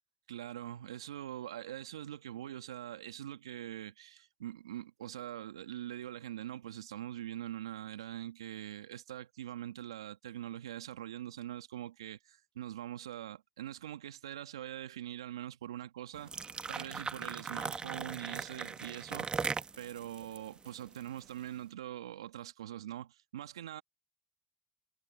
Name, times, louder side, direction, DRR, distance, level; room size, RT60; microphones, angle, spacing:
voice 1, 0.3-16.3 16.7-23.8, right 12 dB, 90° right, 1.6 m, -43 dB
sound 1, 16.1-21.4, right 5 dB, 35° right, 1.1 m, -39 dB
hypercardioid pair, 50°, 3 cm